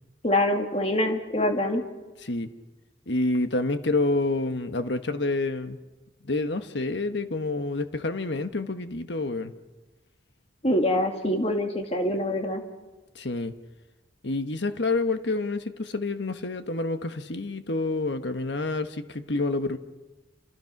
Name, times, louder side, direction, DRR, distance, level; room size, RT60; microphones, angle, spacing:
voice 1, 0.2-1.8 10.6-12.6, left 1 dB, 35° left, 2.6 m, -25 dB
voice 2, 3.1-5.8 6.3-9.5 13.1-13.5 14.2-19.8, left 2 dB, 65° left, 1.4 m, -28 dB
29.0 x 27.5 x 6.0 m
head